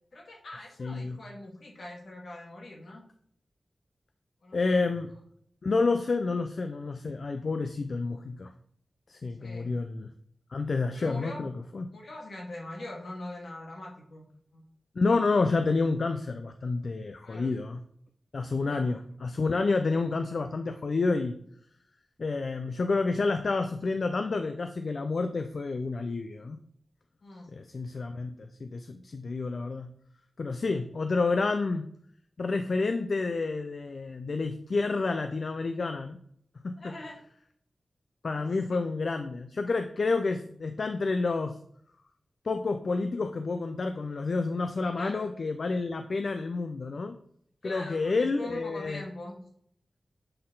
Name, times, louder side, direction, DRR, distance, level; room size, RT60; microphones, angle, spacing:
voice 1, 0.1-3.0 4.4-4.8 9.4-9.7 10.9-11.5 11.9-14.6 17.2-17.5 18.7-18.9 27.2-27.5 36.8-37.2 38.4-38.8 45.0-45.3 47.6-49.4, left 1 dB, 75° left, -1 dB, 1.8 m, -42 dB
voice 2, 0.8-1.2 4.5-5.1 5.6-8.5 9.1-10.1 10.5-11.9 15.0-17.8 18.3-21.4 22.2-26.6 27.5-29.9 30.4-31.9 32.4-36.2 36.6-36.9 38.2-41.6 42.4-47.2 47.6-49.0, left 3 dB, 60° left, 7 dB, 0.4 m, -29 dB
7.6 x 4.2 x 3.9 m, 0.65 s
wide cardioid pair, 115°, 0 cm